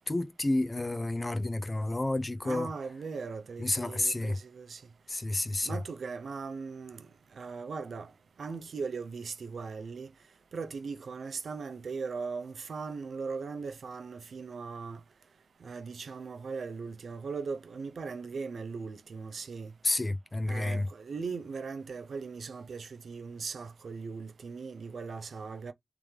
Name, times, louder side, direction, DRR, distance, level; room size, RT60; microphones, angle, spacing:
voice 1, 0.0-2.7 3.6-4.4 5.1-5.8 19.8-20.9, left 2 dB, 40° left, 0.7 m, -30 dB
voice 2, 2.4-4.8 5.6-8.1 8.4-10.1 10.5-15.0 15.6-19.7 20.5-25.7, right 5 dB, 90° right, 0.6 m, -39 dB
3.5 x 3.3 x 3.2 m
cardioid pair, 45°, 0 cm